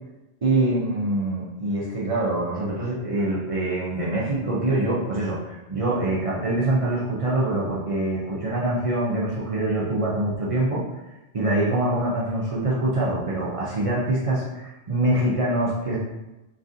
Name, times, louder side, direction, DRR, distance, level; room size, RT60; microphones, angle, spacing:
voice 1, 0.4-10.8 11.3-16.0, right 1 dB, 50° right, -6 dB, 0.4 m, -24 dB
3.1 x 2.4 x 2.6 m, 1.0 s
omnidirectional pair, 1.3 m